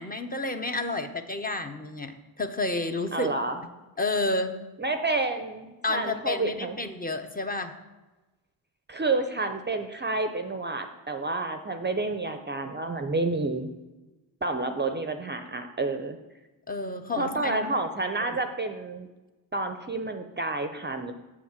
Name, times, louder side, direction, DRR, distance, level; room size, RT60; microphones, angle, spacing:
voice 1, 0.0-3.3 4.0-4.6 5.8-7.8 16.7-17.8 18.2-18.4, left 2 dB, 20° left, 6 dB, 0.9 m, -30 dB
voice 2, 3.1-3.6 4.8-6.8 8.9-13.7 14.4-16.2 17.2-19.1 19.5-21.1, right 3 dB, 25° right, 7 dB, 0.7 m, -29 dB
6.5 x 6.1 x 7.4 m, 1.1 s
cardioid pair, 70°, 47 cm